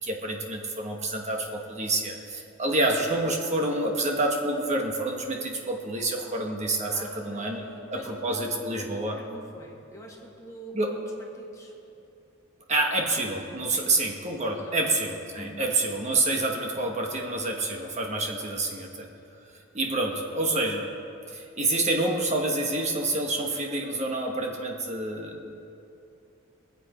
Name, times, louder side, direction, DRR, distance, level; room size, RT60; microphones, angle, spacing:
voice 1, 0.0-9.2 10.7-10.9 12.7-19.1 19.7-20.9 21.3-25.6, right 2 dB, 35° right, 1 dB, 1.2 m, -28 dB
voice 2, 6.9-11.7 13.7-14.1 14.5-15.0 15.3-15.7, equal, 15° left, -1 dB, 1.6 m, -45 dB
22.5 x 7.9 x 5.0 m, 2.7 s
head